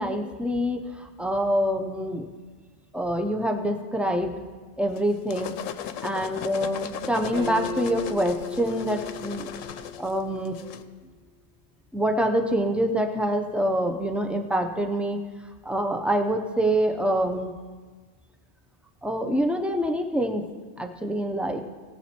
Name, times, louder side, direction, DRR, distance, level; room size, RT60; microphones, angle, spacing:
voice 1, 0.0-2.3 2.9-4.3 4.8-5.5 6.0-9.5 10.0-10.7 11.9-15.2 15.6-17.5 19.0-20.4 20.8-21.6, equal, ahead, 3 dB, 0.3 m, -26 dB
sound 1, 4.9-10.8, left 9 dB, 80° left, 0.9 m, -37 dB
Acoustic guitar, 7.3-10.7, left 2 dB, 65° right, 1.2 m, -37 dB
17.0 x 7.3 x 4.4 m, 1.4 s
omnidirectional pair, 1.3 m